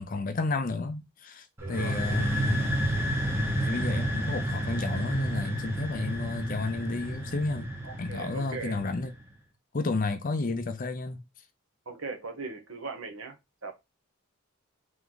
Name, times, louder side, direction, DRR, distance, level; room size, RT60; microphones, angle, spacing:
voice 1, 0.0-2.9 3.6-7.7 8.0-9.1 9.7-11.2, left 3 dB, 40° left, 0.5 m, -32 dB
sound 1, 1.6-9.2, right 1 dB, 10° right, 0.8 m, -31 dB
voice 2, 1.6-2.4 7.8-8.8 11.9-13.4 13.6-13.7, right 3 dB, 70° right, 1.1 m, -39 dB
3.4 x 3.0 x 3.8 m
head